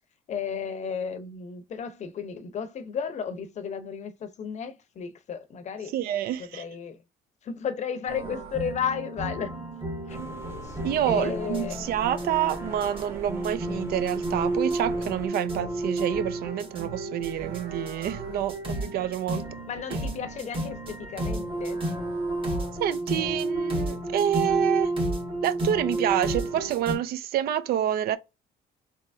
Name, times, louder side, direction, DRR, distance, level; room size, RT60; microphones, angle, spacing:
voice 1, 0.3-5.9 6.4-7.0 7.4-9.5 10.1-10.2 10.6-10.8 11.0-11.8 19.7-21.8, left 7 dB, 45° left, 0.7 m, -33 dB
voice 2, 5.9-6.6 10.8-19.5 19.9-20.0 22.8-24.9 25.4-28.2, right 11 dB, 65° right, 0.4 m, -28 dB
sound 1, 8.1-27.0, right 1 dB, 30° right, 1.6 m, -31 dB
sound 2, 10.1-15.3, right 1 dB, 15° right, 1.0 m, -44 dB
3.4 x 2.8 x 2.5 m
cardioid pair, 110°, 17 cm